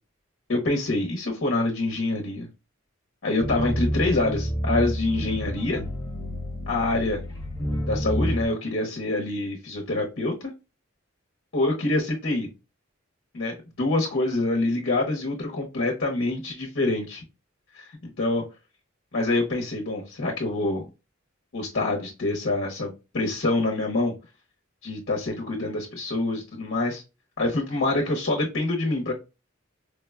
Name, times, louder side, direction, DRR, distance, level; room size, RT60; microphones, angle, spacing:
voice 1, 0.5-2.5 3.2-5.8 6.7-7.2 7.9-10.5 11.5-12.5 13.3-17.2 17.7-18.4 19.1-20.8 21.5-24.1 24.8-27.0 27.4-29.1, left 2 dB, 60° left, 1 dB, 0.9 m, -26 dB
sound 1, 3.4-8.5, equal, 20° left, 0.8 m, -29 dB
4.6 x 2.2 x 2.2 m, 0.27 s
head